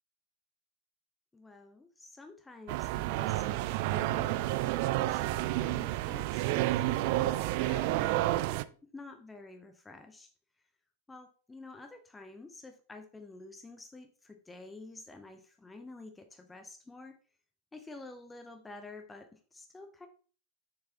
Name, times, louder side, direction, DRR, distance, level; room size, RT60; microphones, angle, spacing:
voice 1, 1.3-10.3 11.1-17.2 17.7-20.1, left 3 dB, 10° left, 7 dB, 0.8 m, -49 dB
sound 1, 2.7-8.6, right 16 dB, 45° right, 0.3 m, -30 dB
6.9 x 6.5 x 2.9 m, 0.40 s
figure-of-eight pair, 90°, 0 cm